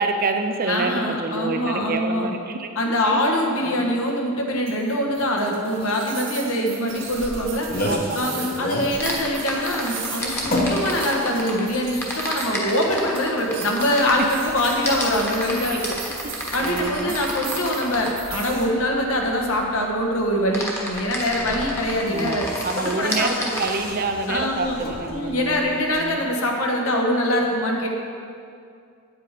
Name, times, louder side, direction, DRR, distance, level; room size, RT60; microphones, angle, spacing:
voice 1, 0.0-2.7 3.1-3.2 3.6-4.0 7.9-9.0 15.7-15.9 16.6-17.2 22.1-25.7 26.0-26.3, right 3 dB, 40° right, 5 dB, 0.6 m, -28 dB
voice 2, 0.7-2.3 2.7-7.7 8.1-16.0 16.5-22.5 22.8-23.5 24.3-24.8 25.1-27.9, left 1 dB, 70° left, 1 dB, 1.4 m, -24 dB
sound 1, 4.7-18.7, right 6 dB, 60° right, 1.6 m, -37 dB
sound 2, 6.9-26.0, left 1 dB, 40° left, 1.2 m, -34 dB
sound 3, 9.0-11.6 12.0-18.2 20.5-23.7, left 1 dB, 10° left, 1.2 m, -30 dB
9.0 x 8.3 x 5.0 m, 2.4 s
head